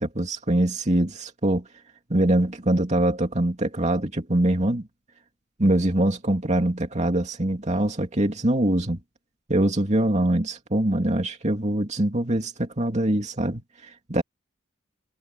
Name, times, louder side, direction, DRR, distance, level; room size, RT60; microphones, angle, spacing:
voice 1, 0.0-1.7 2.1-4.9 5.6-9.0 9.5-14.2, right 1 dB, 35° right, 2.6 m, -23 dB
head